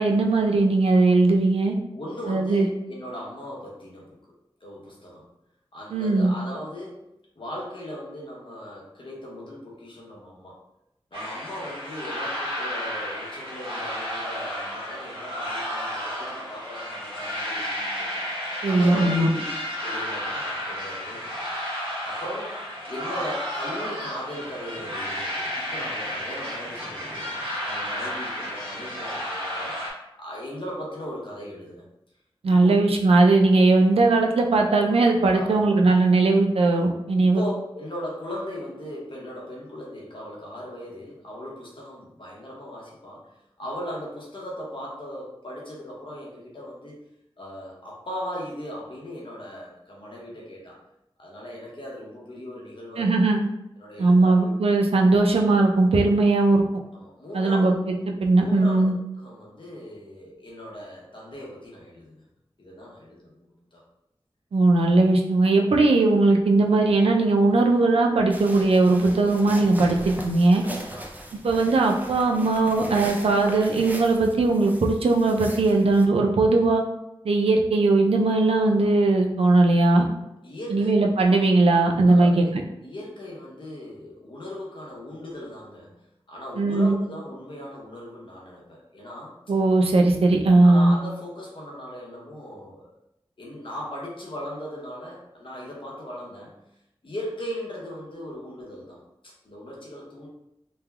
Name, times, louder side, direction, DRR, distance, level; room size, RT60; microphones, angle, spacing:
voice 1, 0.0-1.8 2.3-2.7 5.9-6.3 18.6-19.3 32.4-37.4 53.0-53.4 54.0-56.6 57.3-58.9 64.5-70.6 71.4-76.8 77.2-80.1 80.7-82.4 86.6-87.0 89.5-90.9, right 2 dB, 85° right, 1 dB, 0.4 m, -19 dB
voice 2, 1.9-4.2 4.6-5.3 5.7-7.0 7.4-10.6 11.1-18.2 18.7-19.5 19.8-21.5 22.0-22.6 22.9-27.3 27.6-29.7 30.2-31.9 32.5-32.8 35.3-35.7 37.2-47.0 47.4-50.8 51.2-53.1 53.8-54.5 56.9-57.8 58.4-62.2 62.6-63.8 70.6-71.1 80.4-80.9 82.1-82.5 82.8-89.3 90.6-92.9 93.4-96.5 97.0-100.3, left 1 dB, 60° left, -4 dB, 0.9 m, -38 dB
sound 1, 11.1-29.9, equal, 60° right, 1.0 m, -32 dB
sound 2, 68.3-76.1, right 1 dB, 15° right, 0.4 m, -39 dB
3.2 x 2.2 x 2.3 m, 0.85 s
wide cardioid pair, 70°, 10 cm